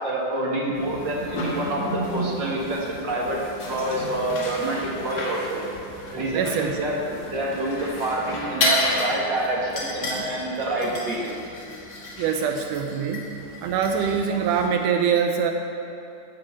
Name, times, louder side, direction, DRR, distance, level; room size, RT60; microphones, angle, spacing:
voice 1, 0.0-3.4 3.7-5.6 6.1-11.2, right 1 dB, 45° right, -3 dB, 1.7 m, -27 dB
sound 1, 0.7-14.7, left 1 dB, 40° left, 1.8 m, -32 dB
voice 2, 6.3-6.8 12.2-13.3 13.6-15.5, right 7 dB, 85° right, 4 dB, 2.1 m, -23 dB
11.5 x 5.8 x 8.5 m, 2.7 s
omnidirectional pair, 3.7 m